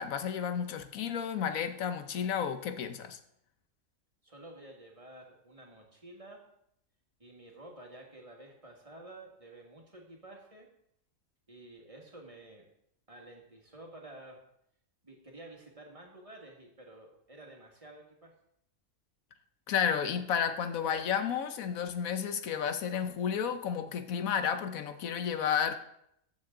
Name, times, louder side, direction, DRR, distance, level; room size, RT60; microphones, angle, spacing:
voice 1, 0.0-3.2 19.7-25.8, left 7 dB, 85° left, 9 dB, 1.3 m, -32 dB
voice 2, 4.2-6.4 7.2-10.7 11.5-12.7 13.1-14.4 15.0-18.4, right 1 dB, 25° right, 0 dB, 2.0 m, -51 dB
14.0 x 7.2 x 3.8 m, 0.75 s
omnidirectional pair, 1.4 m